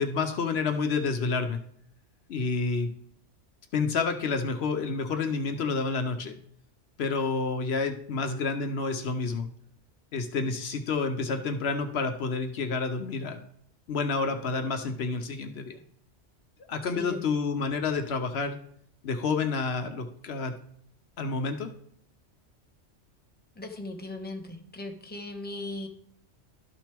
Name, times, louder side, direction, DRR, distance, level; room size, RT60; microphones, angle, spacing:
voice 1, 0.0-1.6 2.3-2.9 3.7-6.4 7.0-9.5 10.1-13.4 13.9-15.8 16.7-18.6 19.0-20.6 21.2-21.7, left 4 dB, 70° left, 7 dB, 0.9 m, -29 dB
voice 2, 23.6-25.9, left 2 dB, 10° left, 3 dB, 1.0 m, -38 dB
12.5 x 6.1 x 3.4 m, 0.67 s
omnidirectional pair, 1.2 m